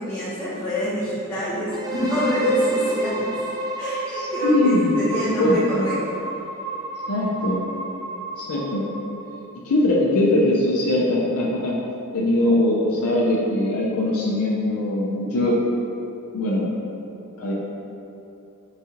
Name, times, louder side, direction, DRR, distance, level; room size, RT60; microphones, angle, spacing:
voice 1, 0.0-3.4 3.8-6.2, left 1 dB, 15° left, -12 dB, 0.7 m, -26 dB
sound 1, 1.7-9.5, right 2 dB, 15° right, 0.4 m, -30 dB
voice 2, 4.1-4.9 5.3-5.9 7.1-7.7 8.3-8.9 9.6-11.8 12.1-15.6 16.3-16.7 17.4-17.5, left 1 dB, 70° left, -5 dB, 0.6 m, -21 dB
4.0 x 2.8 x 3.7 m, 2.9 s
head